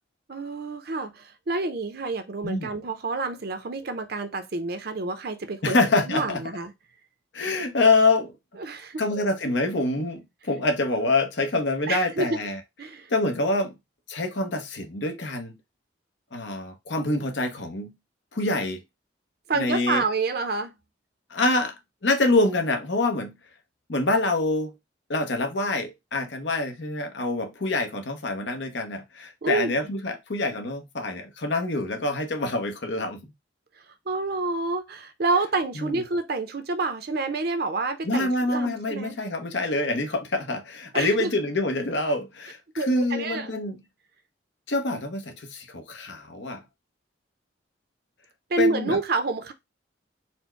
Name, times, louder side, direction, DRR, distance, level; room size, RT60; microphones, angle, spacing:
voice 1, 0.3-6.7 8.6-9.3 11.9-12.4 12.8-13.1 19.5-20.7 29.4-29.9 34.1-39.1 40.9-41.3 42.8-43.5 48.5-49.5, right 3 dB, 55° right, 0.6 m, -28 dB
voice 2, 5.6-6.4 7.3-8.3 9.0-12.6 13.1-13.7 14.1-15.5 16.3-17.9 18.3-18.8 19.5-20.0 21.3-21.7 22.0-23.3 23.9-24.7 25.1-33.3 35.8-36.0 38.0-43.8 44.7-46.6 48.6-49.0, left 2 dB, 70° left, 0.9 m, -26 dB
4.3 x 2.1 x 4.4 m
head